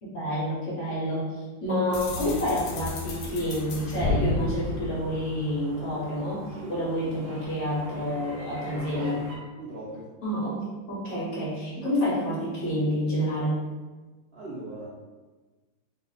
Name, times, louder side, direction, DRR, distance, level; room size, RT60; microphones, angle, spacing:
voice 1, 0.0-9.2 10.2-13.6, equal, 55° left, -6 dB, 1.1 m, -29 dB
sound 1, 1.9-5.8, left 2 dB, 85° left, 1.2 m, -31 dB
sound 2, 2.5-9.4, right 1 dB, 80° right, 1.2 m, -45 dB
voice 2, 8.5-9.3 9.6-10.1 14.3-14.9, right 2 dB, 60° right, -8 dB, 0.6 m, -39 dB
2.8 x 2.4 x 3.9 m, 1.3 s
omnidirectional pair, 1.7 m